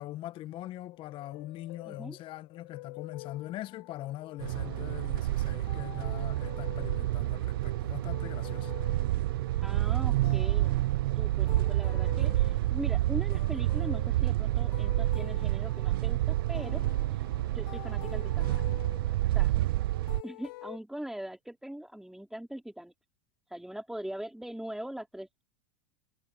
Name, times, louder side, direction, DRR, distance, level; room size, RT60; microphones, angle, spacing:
voice 1, 0.0-8.7, left 15 dB, 45° left, 1.5 m, -42 dB
sound 1, 0.9-20.8, left 21 dB, 70° left, 2.9 m, -48 dB
voice 2, 1.9-2.2 9.6-10.7 11.1-16.8 17.1-17.3 17.5-18.5 19.3-19.5 20.2-22.9 23.5-25.4, right 1 dB, 5° right, 3.5 m, -41 dB
sound 2, 4.4-20.2, right 16 dB, 75° right, 0.5 m, -29 dB
hypercardioid pair, 95°, 12 cm